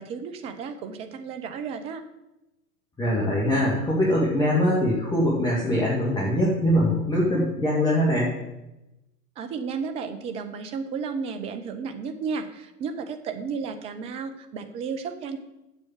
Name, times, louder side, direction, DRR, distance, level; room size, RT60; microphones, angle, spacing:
voice 1, 0.0-2.0 9.4-15.4, right 5 dB, 15° right, 8 dB, 0.5 m, -33 dB
voice 2, 3.0-8.3, equal, 10° left, -5 dB, 1.9 m, -22 dB
7.7 x 7.3 x 7.4 m, 0.96 s
figure-of-eight pair, 115°, 46 cm